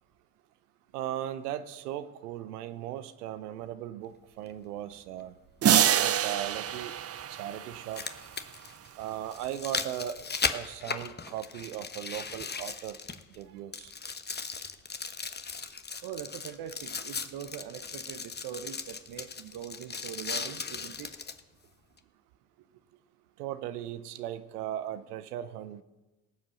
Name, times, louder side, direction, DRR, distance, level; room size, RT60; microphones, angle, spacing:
voice 1, 0.9-5.3 6.0-6.9 7.3-8.0 9.0-10.3 10.5-13.0 13.4-13.9 23.4-25.8, right 11 dB, 85° right, 12 dB, 0.8 m, -37 dB
sound 1, 4.5-4.6 6.5-6.6 7.7-13.4 13.7-21.4 22.0-22.1, left 5 dB, 20° left, 1.1 m, -37 dB
sound 2, 5.6-8.1, right 10 dB, 35° right, 0.6 m, -26 dB
voice 2, 16.0-21.1, right 10 dB, 55° right, 8 dB, 0.9 m, -42 dB
18.5 x 7.4 x 6.2 m, 1.1 s
hypercardioid pair, 60°, 45 cm